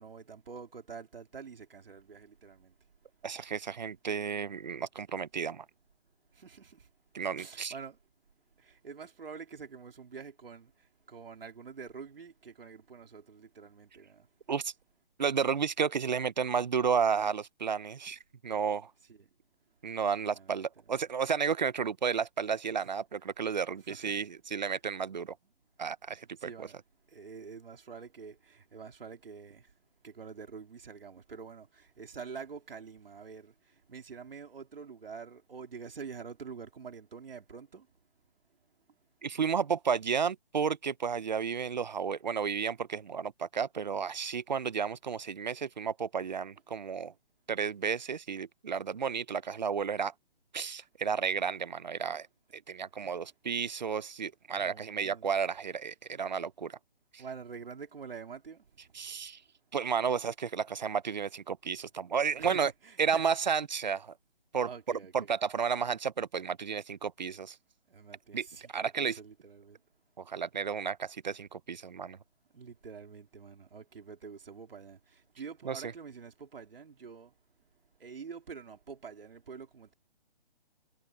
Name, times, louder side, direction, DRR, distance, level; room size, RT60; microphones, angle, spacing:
voice 1, 0.0-2.7 6.3-6.9 7.4-8.0 8.6-14.3 19.1-19.3 20.2-20.6 22.8-22.9 23.8-24.2 26.4-26.8 27.1-29.7 30.0-37.9 52.9-53.2 54.6-55.3 57.2-58.7 62.4-63.2 64.6-65.3 67.9-69.8 72.5-77.3 78.0-79.9, right 5 dB, 75° right, 3.7 m, -47 dB
voice 2, 3.2-5.6 7.1-7.7 14.5-14.7 15.2-18.9 19.8-25.4 25.8-26.7 39.2-47.1 47.5-50.1 50.5-52.3 52.5-56.8 57.1-57.2 58.9-59.4 59.7-62.7 63.0-64.1 64.5-64.7 65.1-67.6 68.3-68.5 68.7-69.2 70.2-72.2 75.6-75.9, right 6 dB, 50° right, 0.8 m, -32 dB
hypercardioid pair, 180°, 29 cm